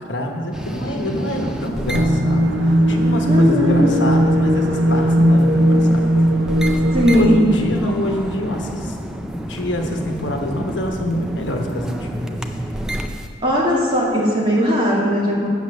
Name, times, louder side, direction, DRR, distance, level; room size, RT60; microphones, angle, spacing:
voice 1, 0.0-6.1 7.1-9.0 9.5-12.4, equal, 75° left, 2 dB, 1.1 m, -25 dB
sound 1, 0.5-13.3, equal, 5° right, 0.4 m, -29 dB
sound 2, 1.9-7.4, equal, 90° right, 0.7 m, -17 dB
voice 2, 3.2-4.0 6.9-7.5 13.4-15.5, equal, 30° right, -5 dB, 2.1 m, -18 dB
8.1 x 7.0 x 6.4 m, 2.1 s
head